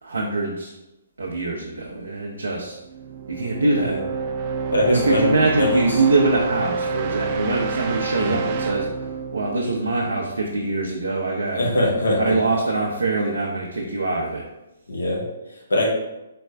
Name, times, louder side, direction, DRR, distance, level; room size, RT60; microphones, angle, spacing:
voice 1, 0.0-0.7 1.2-2.8 3.3-4.0 4.9-11.7 12.2-14.5, right 3 dB, 80° right, -2 dB, 0.6 m, -23 dB
sound 1, 2.9-10.7, right 5 dB, 40° right, 0.3 m, -29 dB
voice 2, 4.7-6.0 8.1-8.4 11.5-12.3 14.9-15.2 15.7-15.9, left 1 dB, 75° left, -2 dB, 1.2 m, -22 dB
4.2 x 3.2 x 3.3 m, 0.96 s
figure-of-eight pair, 130°, 0 cm